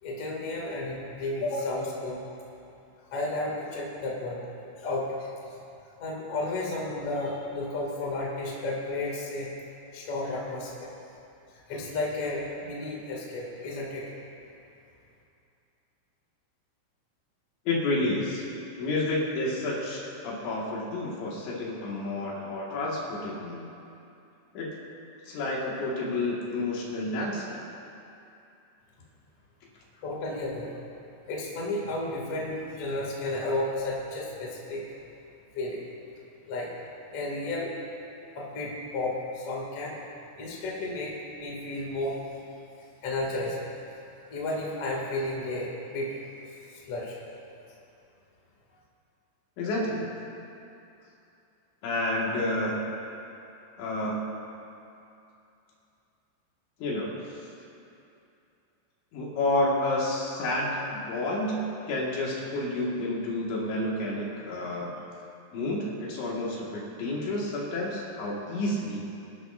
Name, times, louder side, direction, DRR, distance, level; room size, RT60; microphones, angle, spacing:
voice 1, 0.0-2.2 3.1-4.4 4.8-5.3 6.0-9.5 9.9-10.9 11.7-14.1 30.0-30.8 31.3-34.8 35.5-35.8 36.5-36.7 37.1-37.7 38.3-40.0 40.4-42.2 43.0-43.6 44.3-46.1 46.7-47.2, left 2 dB, 40° left, -4 dB, 2.5 m, -32 dB
voice 2, 17.7-18.4 18.8-23.6 24.5-24.7 25.3-27.6 49.6-50.1 51.8-52.9 53.8-54.3 56.8-57.1 59.1-65.0 65.5-69.0, left 1 dB, 70° left, -4 dB, 4.0 m, -30 dB
26.5 x 11.5 x 2.6 m, 2.7 s
omnidirectional pair, 5.8 m